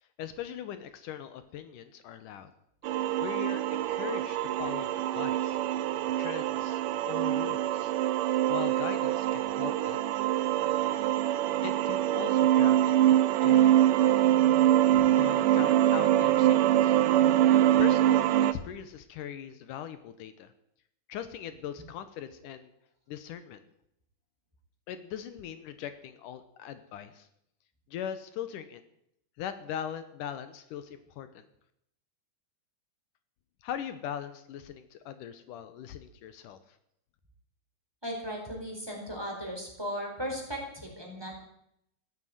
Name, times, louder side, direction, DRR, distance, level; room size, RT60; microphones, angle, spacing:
voice 1, 0.2-2.5 3.2-5.6 6.1-6.8 7.1-7.9 8.5-10.0 11.6-13.7 15.2-17.0 17.8-20.5 21.1-22.7 23.1-23.6 24.9-27.3 27.9-28.8 29.4-31.4 33.6-36.6, left 9 dB, 80° left, 11 dB, 2.6 m, -40 dB
sound 1, 2.8-18.5, right 12 dB, 85° right, 2.4 m, -24 dB
voice 2, 38.0-41.4, equal, 5° right, 0 dB, 4.3 m, -37 dB
16.0 x 9.5 x 9.3 m, 0.76 s
omnidirectional pair, 3.7 m